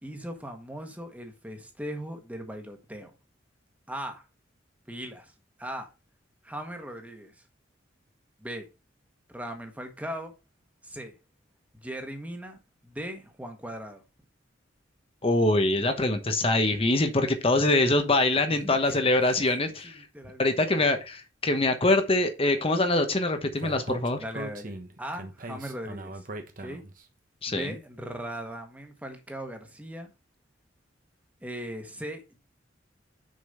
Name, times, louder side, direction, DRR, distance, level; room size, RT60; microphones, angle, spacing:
voice 1, 0.0-3.1 3.9-4.2 4.9-5.3 5.6-5.9 6.4-7.4 8.4-8.7 9.3-10.3 10.8-11.1 11.8-14.0 18.5-19.0 19.4-20.5 24.2-26.3 26.6-26.8 27.5-30.1 31.4-32.4, equal, 10° right, 1.5 m, -39 dB
voice 2, 15.2-20.0 20.4-24.2 27.4-27.7, left 2 dB, 30° left, 1.1 m, -24 dB
Speech, 23.6-27.0, right 1 dB, 45° right, 1.3 m, -39 dB
6.6 x 5.4 x 5.4 m
head